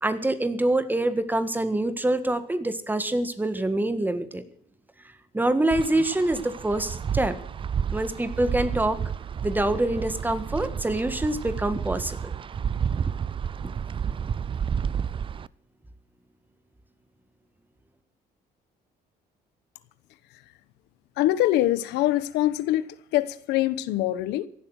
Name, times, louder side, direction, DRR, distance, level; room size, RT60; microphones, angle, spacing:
voice 1, 0.0-4.4 5.3-7.4 7.9-9.0 9.4-12.3, right 1 dB, 10° right, 1.7 m, -25 dB
Wind, 5.7-15.5, right 7 dB, 30° right, 0.5 m, -31 dB
voice 2, 21.2-24.5, left 14 dB, 90° left, 1.1 m, -24 dB
16.5 x 11.5 x 6.5 m
cardioid pair, 110°, 17 cm